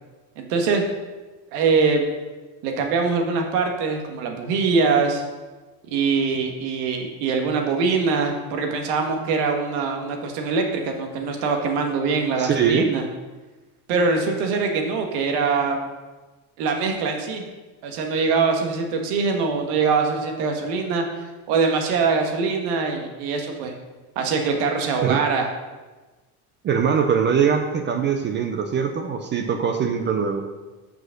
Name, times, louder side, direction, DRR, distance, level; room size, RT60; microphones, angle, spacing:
voice 1, 0.4-0.8 1.5-2.1 2.6-5.2 5.9-13.0 13.9-15.9 16.6-17.4 17.8-21.0 21.5-23.7 24.1-25.5, right 4 dB, 80° right, 3 dB, 1.5 m, -23 dB
voice 2, 12.4-12.9 25.0-25.2 26.6-30.4, right 7 dB, 25° right, 6 dB, 0.4 m, -22 dB
6.4 x 4.9 x 6.3 m, 1.2 s
cardioid pair, 145°, 44 cm